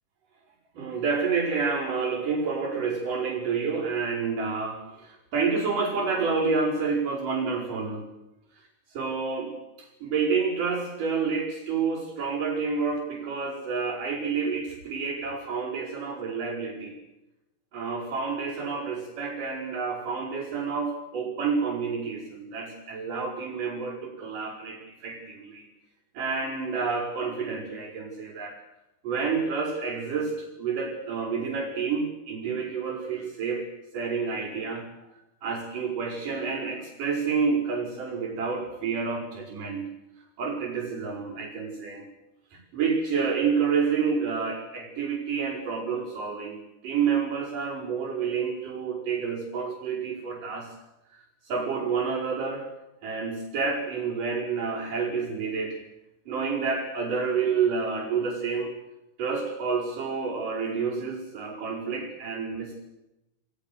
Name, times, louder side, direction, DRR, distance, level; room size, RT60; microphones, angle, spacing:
voice 1, 0.7-8.1 8.9-17.0 17.7-25.7 26.1-28.6 29.0-33.7 33.9-34.9 35.4-39.9 40.4-42.1 42.5-46.6 46.8-50.8 51.1-52.7 53.0-55.8 56.3-58.7 59.2-62.8, right 5 dB, 85° right, -8 dB, 6.9 m, -29 dB
30.0 x 21.5 x 6.9 m, 0.93 s
omnidirectional pair, 3.7 m